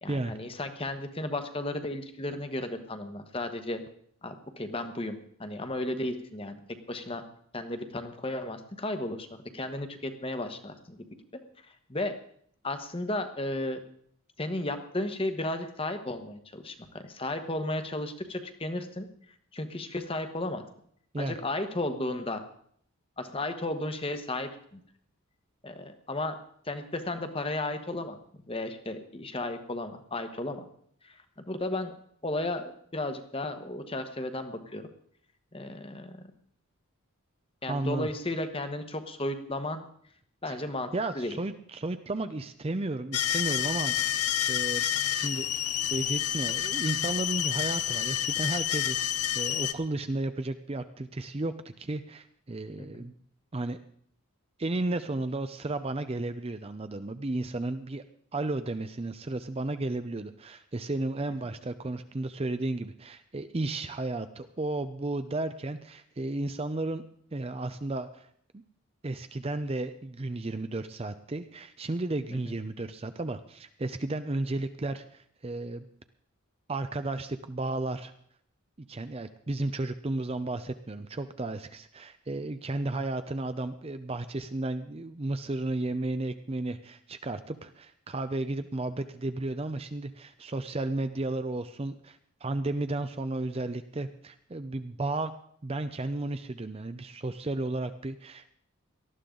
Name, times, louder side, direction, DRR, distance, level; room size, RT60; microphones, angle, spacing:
voice 1, 0.0-3.8 4.2-6.6 6.9-7.2 7.5-9.3 9.5-11.0 11.9-12.1 12.6-13.8 14.4-19.1 19.5-20.6 21.2-22.4 23.2-24.8 25.6-26.4 26.6-28.2 28.5-30.7 31.0-31.2 31.5-31.9 32.2-34.9 35.5-36.3 37.6-39.8 40.4-41.4 52.8-52.9 72.3-72.4, left 1 dB, 25° left, 8 dB, 1.1 m, -34 dB
voice 2, 37.7-38.1 40.5-40.6 40.9-44.8 45.1-53.1 53.5-53.8 54.6-58.0 58.3-67.0 67.3-68.3 69.0-75.8 76.7-78.1 78.9-95.3 95.6-98.5, right 2 dB, 25° right, 10 dB, 0.5 m, -33 dB
sound 1, 43.1-49.7, left 11 dB, 90° left, 0.8 m, -29 dB
18.5 x 13.0 x 3.8 m, 0.64 s
head